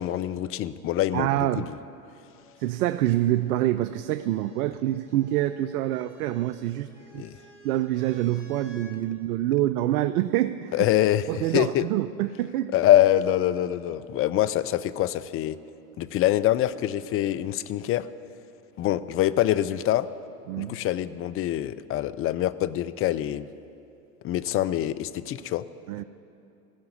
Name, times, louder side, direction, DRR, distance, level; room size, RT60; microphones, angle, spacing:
voice 1, 0.0-1.7 7.2-7.3 10.7-11.9 12.7-15.6 16.0-18.1 18.8-20.1 20.6-23.5 24.2-25.7, left 13 dB, 30° left, 15 dB, 0.4 m, -25 dB
voice 2, 1.1-1.7 2.6-7.2 7.6-10.9 11.3-12.7 20.5-20.8 25.9-26.0, right 14 dB, 80° right, 13 dB, 0.5 m, -26 dB
sound 1, 2.4-9.0 10.1-10.7, left 1 dB, 15° left, 3.2 m, -55 dB
15.0 x 5.8 x 9.6 m, 2.7 s
hypercardioid pair, 85°, 44 cm